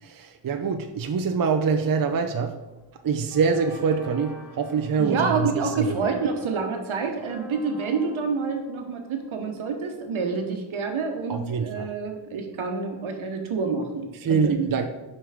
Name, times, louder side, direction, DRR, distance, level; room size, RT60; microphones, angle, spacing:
voice 1, 0.0-2.6 3.0-6.1 11.3-11.9 14.2-14.9, right 5 dB, 45° right, 6 dB, 0.6 m, -25 dB
sound 1, 2.5-2.8 3.3-10.1, right 2 dB, 5° right, 2.6 m, -47 dB
voice 2, 5.0-14.5, right 4 dB, 75° right, 4 dB, 1.3 m, -28 dB
5.6 x 5.5 x 5.0 m, 1.1 s
cardioid pair, 60°, 50 cm